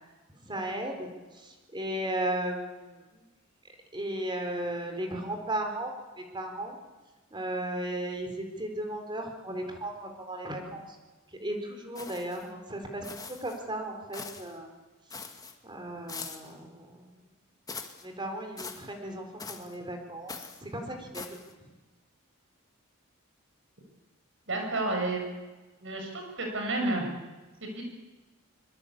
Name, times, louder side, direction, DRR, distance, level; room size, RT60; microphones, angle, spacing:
voice 1, 0.4-1.1 1.4-3.0 3.9-6.8 7.3-10.8 11.4-14.7 15.6-17.0 18.0-20.4 20.6-21.3, right 1 dB, 20° right, 4 dB, 4.1 m, -35 dB
sound 1, 11.9-12.5 13.0-13.6 14.1-14.5 15.1-15.5 16.1-16.5 17.7-18.0 18.6-18.9 19.4-19.8 20.3-20.6 21.1-21.5, left 4 dB, 15° left, 2.1 m, -42 dB
voice 2, 24.5-25.2 25.8-27.0 27.6-27.8, right 2 dB, 60° right, 2 dB, 7.0 m, -30 dB
24.5 x 23.0 x 8.7 m, 1.2 s
head